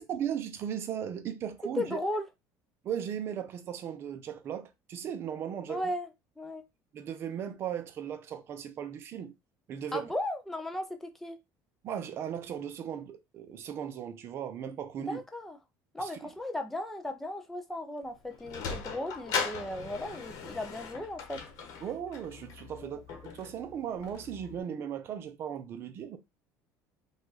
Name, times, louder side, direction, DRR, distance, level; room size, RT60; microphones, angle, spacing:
voice 1, 0.0-2.0 2.8-5.8 6.9-9.3 9.7-10.1 11.8-15.2 16.0-16.1 21.8-26.2, right 9 dB, 35° right, 0.7 m, -37 dB
voice 2, 1.6-2.3 5.7-6.1 6.4-6.6 9.9-11.4 15.1-15.6 15.9-21.4 22.8-23.0, left 1 dB, 5° left, 0.5 m, -36 dB
Sliding door, 18.0-24.6, left 5 dB, 50° left, 1.1 m, -39 dB
5.1 x 2.5 x 4.0 m
cardioid pair, 175°, 7 cm